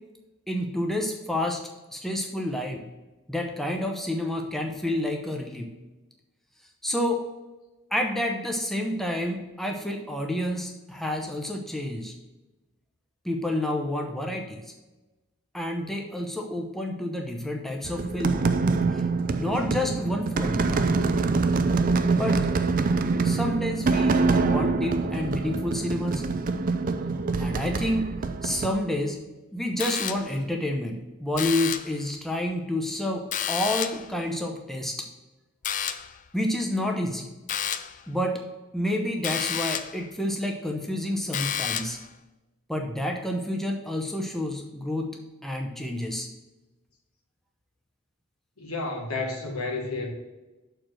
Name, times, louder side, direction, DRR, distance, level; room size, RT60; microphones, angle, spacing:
voice 1, 0.5-1.6 1.9-2.8 3.3-5.7 6.8-7.2 7.9-12.1 13.2-14.6 15.5-18.4 18.9-19.0 19.4-20.9 22.2-22.4 23.2-26.2 27.4-28.1 28.4-29.2 29.5-35.0 36.3-37.3 38.1-38.4 38.7-42.0 42.7-45.2 45.4-46.3, left 1 dB, ahead, 2 dB, 0.7 m, -29 dB
sound 1, 17.8-28.7, right 4 dB, 40° right, 0.4 m, -25 dB
sound 2, 29.8-30.5 31.3-32.0 33.3-34.1 35.6-36.2 37.5-38.0 39.2-40.0 41.3-42.1, left 9 dB, 35° left, 0.3 m, -30 dB
voice 2, 48.6-50.1, left 3 dB, 85° left, 1 dB, 1.6 m, -31 dB
6.5 x 4.5 x 6.2 m, 1.1 s
head